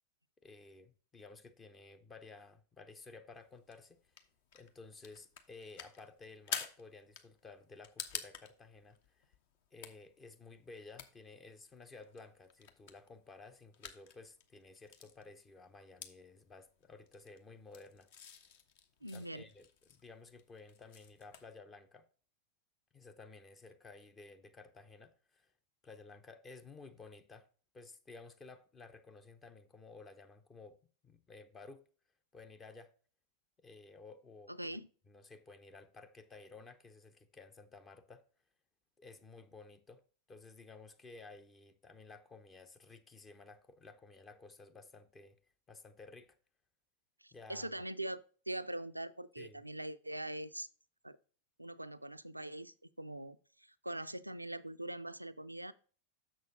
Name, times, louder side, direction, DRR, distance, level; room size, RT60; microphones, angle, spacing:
voice 1, 0.4-4.1 4.5-9.3 9.7-18.1 19.1-22.1 22.9-25.5 25.8-27.5 27.7-30.8 31.0-31.8 32.3-32.9 33.6-34.8 35.1-38.3 39.0-40.0 40.3-45.4 45.7-46.4 47.3-47.7 49.4-49.6, left 3 dB, 20° left, 0.6 m, -55 dB
sound 1, 3.3-21.5, left 7 dB, 50° left, 0.9 m, -50 dB
voice 2, 19.0-19.4 34.5-34.9 47.2-50.7 51.0-51.2 51.6-55.7, right 1 dB, 85° right, 0.4 m, -43 dB
6.6 x 6.4 x 3.8 m
figure-of-eight pair, 90°, 0 cm